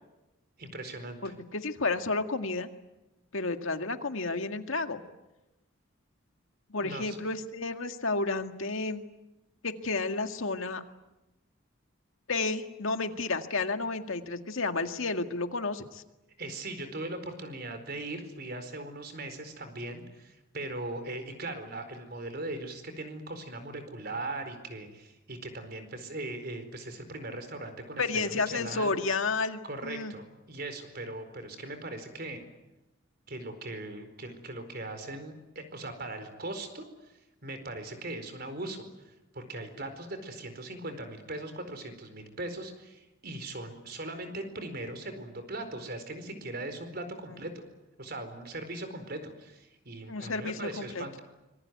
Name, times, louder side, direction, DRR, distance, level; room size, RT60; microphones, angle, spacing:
voice 1, 0.6-1.3 6.8-7.2 16.4-29.0 29.6-32.4 33.3-36.9 37.4-38.9 39.3-47.6 48.0-51.2, right 2 dB, 50° right, 8 dB, 4.5 m, -39 dB
voice 2, 1.2-2.7 3.3-5.0 6.7-9.0 9.6-10.8 12.3-16.0 28.0-30.1 47.3-47.4 50.1-51.0, left 3 dB, 75° left, 7 dB, 2.0 m, -31 dB
25.5 x 22.5 x 9.5 m, 1.0 s
head